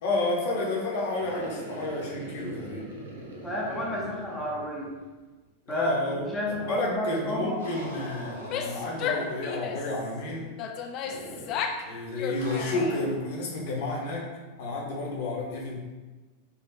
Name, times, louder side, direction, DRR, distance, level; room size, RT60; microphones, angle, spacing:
voice 1, 0.0-2.9 5.7-6.3 6.7-10.5 11.9-14.3 14.6-15.8, left 2 dB, 55° left, -3 dB, 0.9 m, -31 dB
sound 1, 1.0-5.2 5.5-5.6 7.6-9.6 11.0-11.7 12.4-13.2, right 1 dB, 65° right, 0.6 m, -42 dB
voice 2, 3.4-4.9 5.7-7.6, equal, 10° left, -4 dB, 0.7 m, -30 dB
Female speech woman speaking / Yell, 8.3-10.0 10.6-11.9 12.2-13.1, left 7 dB, 40° left, 0.3 m, -33 dB
4.6 x 2.4 x 3.0 m, 1.2 s
figure-of-eight pair, 90°, 0 cm